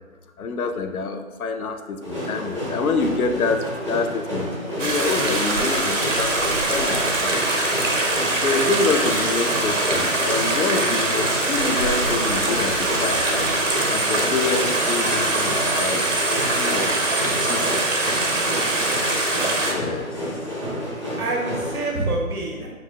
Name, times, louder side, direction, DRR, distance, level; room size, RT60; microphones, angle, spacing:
voice 1, 0.4-7.6 8.4-13.3 13.9-16.0 16.5-16.9 17.5-17.8 19.6-20.2, left 4 dB, 75° left, 7 dB, 0.5 m, -27 dB
sound 1, 2.0-21.9, equal, 20° right, 0.9 m, -30 dB
Stream, 4.8-19.7, right 2 dB, 60° right, 0.9 m, -23 dB
voice 2, 18.3-19.0 21.2-22.7, right 2 dB, 80° right, -1 dB, 1.0 m, -27 dB
6.3 x 3.1 x 2.7 m, 1.5 s
figure-of-eight pair, 160°, 44 cm